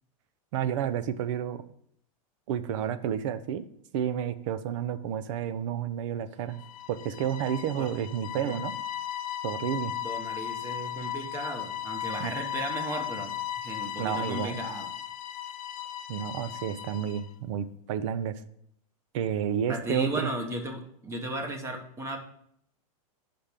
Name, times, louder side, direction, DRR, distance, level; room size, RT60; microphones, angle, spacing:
voice 1, 0.5-1.6 2.5-3.6 3.9-6.6 6.9-8.7 9.4-9.9 12.2-12.3 14.0-14.6 16.1-18.4 19.1-20.3, right 9 dB, 60° right, 14 dB, 0.6 m, -30 dB
sound 1, 6.5-17.3, left 11 dB, 75° left, 0.7 m, -36 dB
voice 2, 10.0-14.9 19.7-22.2, right 1 dB, 15° right, 5 dB, 1.1 m, -35 dB
5.9 x 5.1 x 6.7 m, 0.69 s
supercardioid pair, 145°, 18 cm